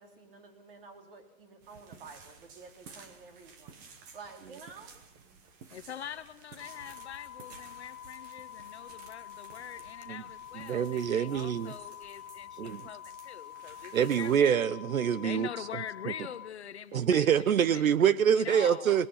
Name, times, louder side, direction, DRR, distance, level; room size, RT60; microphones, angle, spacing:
voice 1, 0.0-4.9 5.2-5.4, right 4 dB, 40° right, 4 dB, 3.9 m, -51 dB
sound 1, 1.6-14.5, right 5 dB, 15° right, 0.9 m, -54 dB
voice 2, 5.7-14.5 15.2-17.8 18.3-19.1, left 9 dB, 50° left, 12 dB, 1.1 m, -44 dB
sound 2, 6.6-16.5, left 11 dB, 85° left, 1.4 m, -47 dB
voice 3, 10.6-11.7 12.6-12.9 13.9-15.6 16.9-19.1, right 8 dB, 75° right, 16 dB, 0.9 m, -26 dB
24.5 x 20.0 x 5.7 m, 0.75 s
hypercardioid pair, 165°, 42 cm